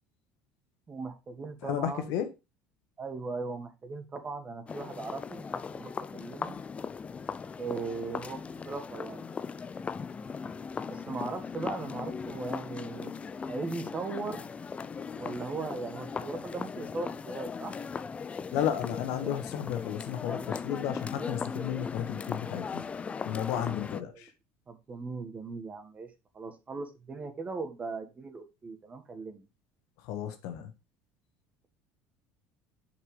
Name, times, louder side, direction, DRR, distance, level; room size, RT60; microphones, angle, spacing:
voice 1, 0.9-2.1 3.0-6.6 7.6-8.4 8.6-9.2 10.9-13.1 13.5-14.4 15.2-17.8 23.9-24.3 24.7-26.1 26.3-29.4, right 3 dB, 25° right, 1.6 m, -38 dB
voice 2, 1.6-2.3 18.5-22.8 23.2-24.3 30.1-30.7, left 10 dB, 75° left, 1.5 m, -33 dB
sound 1, 4.7-24.0, left 5 dB, 20° left, 0.5 m, -38 dB
6.5 x 6.0 x 4.9 m
supercardioid pair, 115°, 6 cm